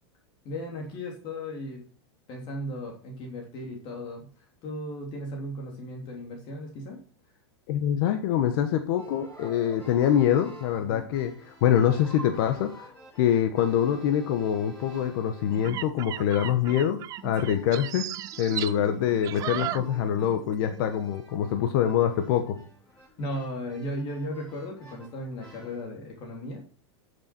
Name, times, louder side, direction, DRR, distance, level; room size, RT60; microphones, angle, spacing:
voice 1, 0.4-1.8 2.3-7.0 10.8-11.1 17.4-17.5 23.2-26.7, equal, 35° left, 0 dB, 2.9 m, -36 dB
voice 2, 7.7-12.9 13.2-17.0 17.2-18.0 18.4-22.6, left 10 dB, 50° left, 7 dB, 1.3 m, -25 dB
sound 1, 8.9-15.8 16.1-25.9, right 1 dB, 10° left, 6.6 m, -51 dB
sound 2, 15.5-20.5 20.7-21.0, right 13 dB, 25° right, 0.4 m, -36 dB
12.5 x 6.8 x 4.4 m, 0.42 s
supercardioid pair, 155°, 15 cm